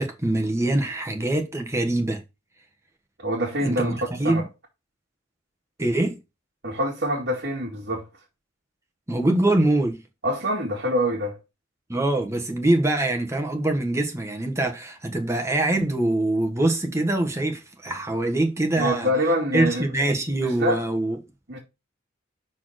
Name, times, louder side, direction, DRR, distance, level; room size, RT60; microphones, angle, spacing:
voice 1, 0.0-2.2 3.6-4.4 5.8-6.2 9.1-10.0 11.9-19.1 19.5-21.2, right 1 dB, 15° right, 1.3 m, -24 dB
voice 2, 3.2-4.4 6.6-8.0 10.2-11.4 18.8-19.9 20.4-20.8 21.5-21.6, equal, 55° right, 2.2 m, -25 dB
5.8 x 4.3 x 6.3 m
head